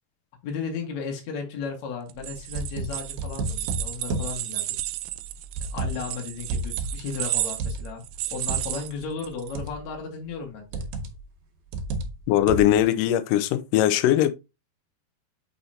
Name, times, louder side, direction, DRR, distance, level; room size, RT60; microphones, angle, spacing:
voice 1, 0.4-4.7 5.7-8.0 8.3-10.8, left 5 dB, 55° left, 2.3 m, -34 dB
sound 1, 2.1-9.5, right 16 dB, 90° right, 2.0 m, -33 dB
sound 2, 2.2-4.4 5.1-6.2 6.5-8.7 9.6-9.9 10.7-11.2 11.7-12.8, right 2 dB, 75° right, 2.7 m, -31 dB
voice 2, 12.3-14.3, left 12 dB, 80° left, 1.9 m, -20 dB
6.6 x 5.7 x 2.7 m
omnidirectional pair, 4.6 m